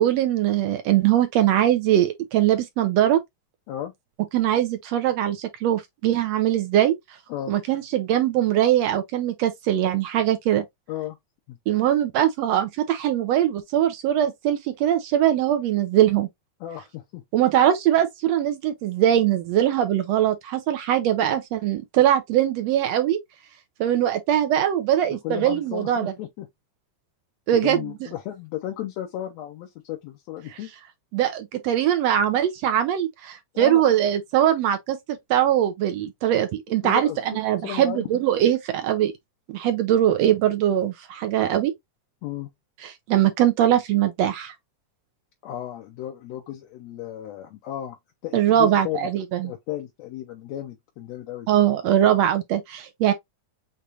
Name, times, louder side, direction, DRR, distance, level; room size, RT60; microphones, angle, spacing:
voice 1, 0.0-3.2 4.3-6.9 7.5-10.6 11.7-16.3 17.3-23.2 23.8-26.1 27.5-27.8 31.1-35.0 35.3-39.1 39.5-41.7 42.8-44.5 48.3-49.5 51.5-53.1, right 11 dB, 75° right, 1.6 m, -21 dB
voice 2, 16.6-17.2 25.2-26.5 27.6-30.7 33.5-33.8 36.8-38.2 42.2-42.5 45.4-48.0 48.2-49.1 49.4-51.5, left 12 dB, 70° left, 1.8 m, -34 dB
6.7 x 2.5 x 2.8 m
omnidirectional pair, 3.6 m